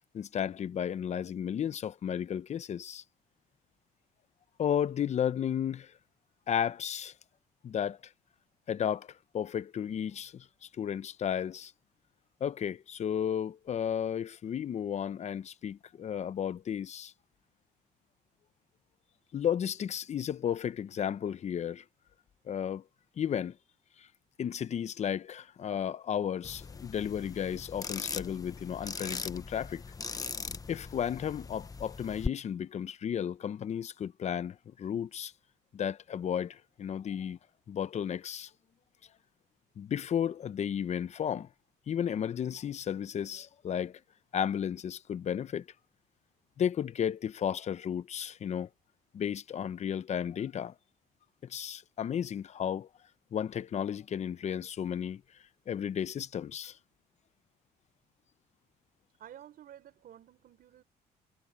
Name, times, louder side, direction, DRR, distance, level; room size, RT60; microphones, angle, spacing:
voice 1, 0.1-3.0 4.6-5.9 6.5-7.1 7.6-8.0 8.7-11.7 12.4-17.1 19.3-21.8 22.5-22.8 23.2-23.6 24.0-24.1 24.4-29.8 30.7-35.3 35.7-37.4 37.7-38.5 39.8-41.5 41.9-44.0 44.3-45.6 46.6-48.7 49.1-50.7 51.4-52.9 53.3-55.2 55.7-56.8, left 9 dB, 40° left, 0.8 m, -33 dB
sound 1, 26.4-32.3, left 4 dB, 20° left, 1.0 m, -40 dB
voice 2, 59.2-60.8, right 11 dB, 60° right, 6.1 m, -52 dB
cardioid pair, 110°, 17 cm